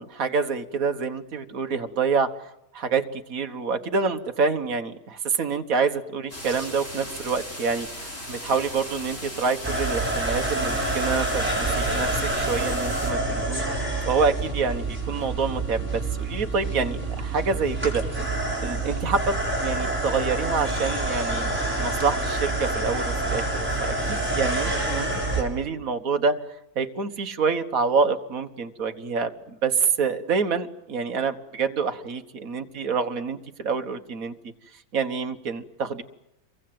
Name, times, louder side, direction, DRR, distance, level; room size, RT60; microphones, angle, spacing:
voice 1, 0.0-2.3 2.7-13.6 14.1-18.1 18.6-25.1 25.4-26.4 26.8-29.3 29.6-34.3 34.9-36.0, right 5 dB, 50° right, 8 dB, 1.8 m, -27 dB
sound 1, 6.3-13.1, left 1 dB, 35° left, 5.9 m, -37 dB
sound 2, 9.6-25.4, right 2 dB, 5° right, 6.9 m, -27 dB
29.0 x 23.5 x 7.8 m, 0.86 s
omnidirectional pair, 1.9 m